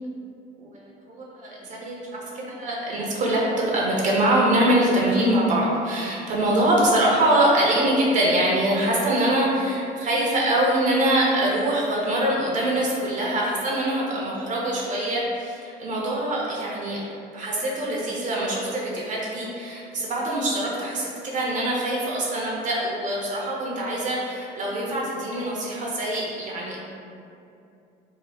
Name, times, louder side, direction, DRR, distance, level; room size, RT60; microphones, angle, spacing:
voice 1, 0.6-17.0 17.3-26.8, right 1 dB, 50° right, -4 dB, 0.8 m, -24 dB
2.9 x 2.5 x 4.2 m, 2.6 s
cardioid pair, 110°, 17 cm